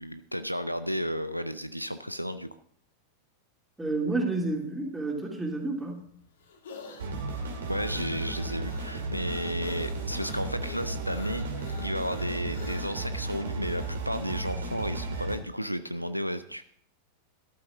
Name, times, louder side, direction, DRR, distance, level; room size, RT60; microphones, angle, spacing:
voice 1, 0.0-2.5 7.7-11.5 11.8-16.6, equal, 90° right, 12 dB, 0.5 m, -33 dB
voice 2, 3.8-6.0, right 2 dB, 10° right, 0 dB, 3.0 m, -30 dB
sound 1, 5.7-14.0, left 4 dB, 65° left, 2.4 m, -48 dB
sound 2, 7.0-15.4, right 3 dB, 65° right, 2.5 m, -34 dB
13.5 x 12.0 x 3.7 m, 0.64 s
figure-of-eight pair, 90°, 0 cm